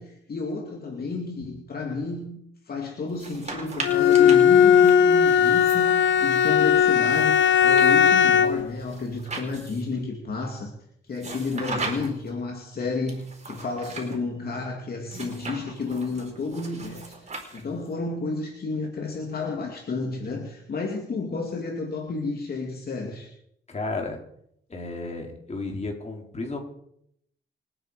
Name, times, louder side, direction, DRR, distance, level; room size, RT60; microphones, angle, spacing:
voice 1, 0.0-2.4 2.7-10.7 11.1-17.2 17.5-23.3, left 3 dB, 50° left, 1 dB, 2.7 m, -31 dB
sound 1, 3.1-6.5 7.1-10.0 11.2-12.3 13.1-14.2 15.1-17.9, right 3 dB, 35° right, 4.5 m, -38 dB
Bowed string instrument, 3.8-8.7, left 8 dB, 65° left, 0.8 m, -18 dB
voice 2, 23.7-24.2 24.7-26.6, left 3 dB, 35° left, 2 dB, 3.9 m, -33 dB
28.0 x 9.9 x 5.1 m, 0.72 s
cardioid pair, 110°, 20 cm